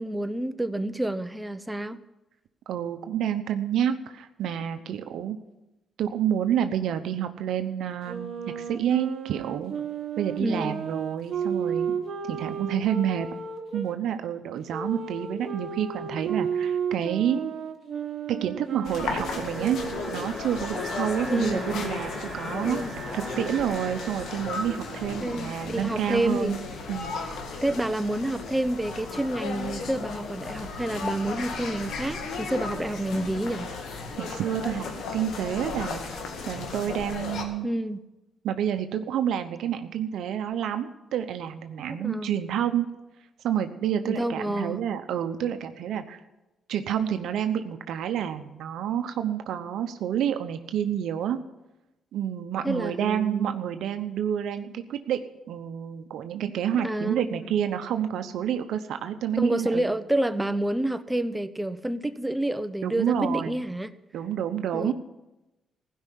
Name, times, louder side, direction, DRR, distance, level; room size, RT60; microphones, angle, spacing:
voice 1, 0.0-2.0 10.4-10.8 21.2-21.6 22.6-22.9 23.3-23.4 25.2-26.6 27.6-33.7 37.6-38.0 42.0-42.4 44.0-44.8 52.6-53.6 56.8-57.5 59.4-63.9 64.7-64.9, right 1 dB, 10° right, 12 dB, 0.7 m, -29 dB
voice 2, 2.7-5.4 6.0-9.7 10.2-12.0 12.3-13.3 13.7-17.5 18.3-19.8 20.1-22.8 23.1-26.6 26.9-27.2 34.2-34.9 35.1-36.0 36.5-37.7 38.4-42.9 43.4-46.2 46.7-51.4 52.1-55.2 55.5-59.9 62.8-63.6 64.1-64.9, right 9 dB, 75° right, 8 dB, 0.8 m, -29 dB
Wind instrument woodwind instrument, 8.0-13.9 14.7-20.4, right 6 dB, 55° right, 1.6 m, -33 dB
sound 1, 18.8-37.4, left 4 dB, 75° left, 2.0 m, -35 dB
Alarm, 19.0-26.1, left 1 dB, 15° left, 3.3 m, -39 dB
16.0 x 5.6 x 10.0 m, 1.0 s
cardioid pair, 90°, 0 cm